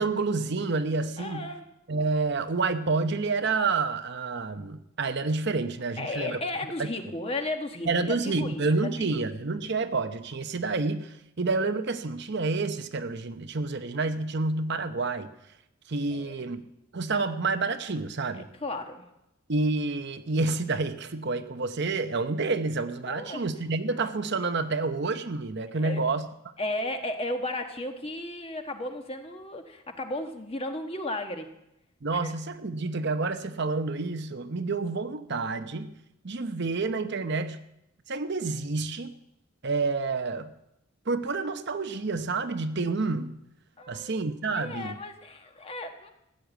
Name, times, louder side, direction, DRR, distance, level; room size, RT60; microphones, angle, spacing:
voice 1, 0.0-1.5 1.9-6.4 7.9-15.3 15.9-16.6 16.9-18.5 19.5-26.3 32.0-35.9 36.2-37.6 38.1-39.1 39.6-40.5 41.1-43.4 43.9-45.0, right 3 dB, 50° right, 9 dB, 0.8 m, -29 dB
voice 2, 1.2-1.6 6.0-9.3 16.1-16.5 18.3-19.0 23.1-23.4 25.7-26.0 26.6-31.5 32.1-32.3 43.8-46.1, left 2 dB, 25° left, 5 dB, 1.3 m, -35 dB
15.5 x 10.5 x 8.1 m, 0.86 s
head